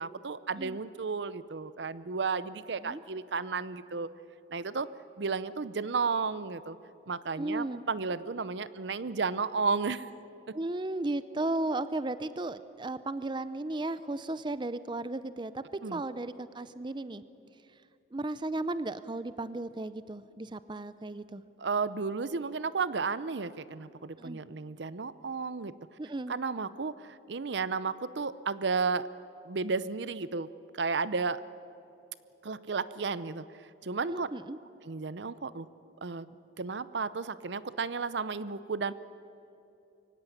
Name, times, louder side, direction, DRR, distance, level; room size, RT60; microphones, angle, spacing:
voice 1, 0.0-4.1 4.5-4.9 5.2-6.8 7.1-10.1 10.5-10.6 15.8-16.0 21.6-25.7 26.3-29.1 29.4-30.5 30.7-31.4 32.4-33.4 33.8-34.3 34.8-35.7 36.0-36.3 36.6-38.9, right 4 dB, 70° right, 16 dB, 0.7 m, -33 dB
voice 2, 7.4-7.8 10.5-15.6 15.9-17.2 18.1-21.4 24.2-24.4 26.0-26.3 34.1-34.6, right 2 dB, 25° right, 14 dB, 0.5 m, -35 dB
23.5 x 17.0 x 9.9 m, 2.9 s
head